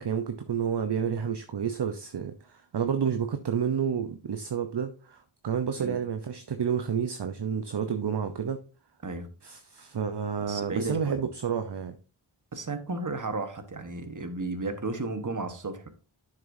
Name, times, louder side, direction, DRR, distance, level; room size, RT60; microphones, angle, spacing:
voice 1, 0.0-8.6 9.4-12.0, right 7 dB, 55° right, 0.8 m, -30 dB
voice 2, 10.4-11.2 12.5-15.9, right 3 dB, 40° right, 1.3 m, -33 dB
11.0 x 6.4 x 2.7 m
wide cardioid pair, 80°, 49 cm